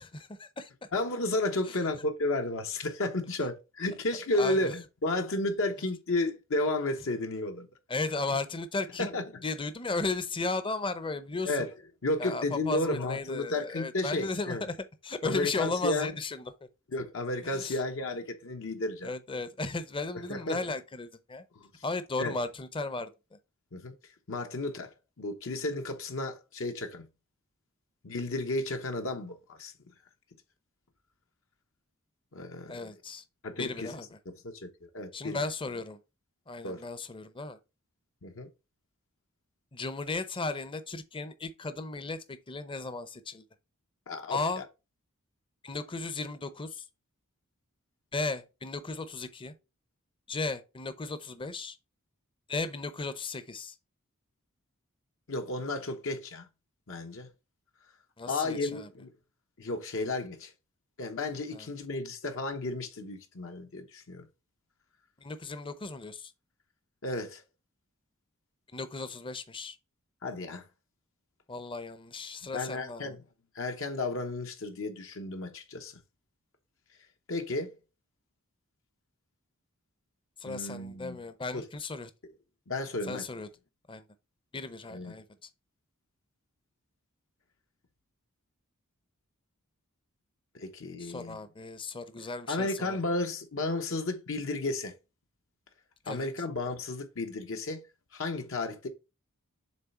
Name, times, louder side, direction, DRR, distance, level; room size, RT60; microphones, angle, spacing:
voice 1, 0.0-0.9 1.7-1.9 4.4-4.7 7.9-9.1 9.4-11.7 12.2-14.8 15.0-16.5 17.4-17.8 19.0-21.4 21.8-23.1 32.7-33.2 33.6-34.2 35.1-36.0 36.5-37.6 39.7-43.4 44.3-44.6 45.6-46.8 48.1-49.5 50.3-51.8 52.5-53.7 58.2-58.9 61.5-61.7 65.2-66.3 68.7-69.8 71.5-73.2 80.4-82.1 83.1-83.5 83.9-84.0 84.5-85.2 91.0-93.0 96.0-96.3, left 3 dB, 25° left, 0.7 m, -35 dB
voice 2, 0.9-7.7 9.0-9.2 11.5-11.7 12.0-14.6 15.2-16.1 16.9-19.1 20.3-20.7 21.6-21.7 22.2-22.3 23.7-23.9 24.3-24.9 25.2-27.0 28.0-29.7 32.3-32.9 33.4-33.9 34.4-34.5 34.8-35.4 36.6-36.8 38.2-38.5 44.1-44.6 55.3-56.5 56.9-57.3 58.3-59.1 59.6-60.5 61.0-64.3 67.0-67.4 70.2-70.6 72.5-73.2 73.5-75.9 77.3-77.7 80.5-81.2 81.5-81.6 82.7-83.2 84.9-85.1 90.5-91.4 92.5-94.9 96.1-97.8 98.1-98.9, left 2 dB, 65° left, 1.0 m, -33 dB
7.5 x 3.2 x 4.3 m
head